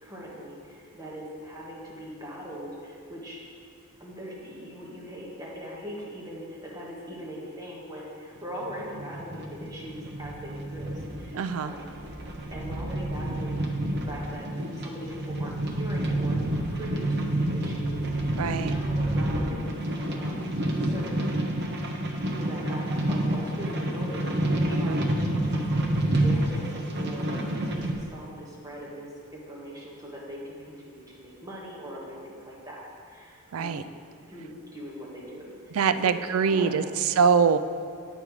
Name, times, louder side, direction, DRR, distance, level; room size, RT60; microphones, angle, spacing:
voice 1, 0.0-3.4 4.0-11.9 12.5-21.4 22.2-25.6 26.2-34.0 34.3-36.9, equal, 15° right, -5 dB, 1.5 m, -41 dB
sound 1, 8.6-27.9, right 1 dB, 50° right, 0.8 m, -29 dB
voice 2, 11.3-11.7 18.3-18.7 24.7-25.0 33.5-33.8 35.7-37.6, right 6 dB, 65° right, 12 dB, 0.4 m, -24 dB
8.5 x 5.3 x 4.7 m, 2.5 s
head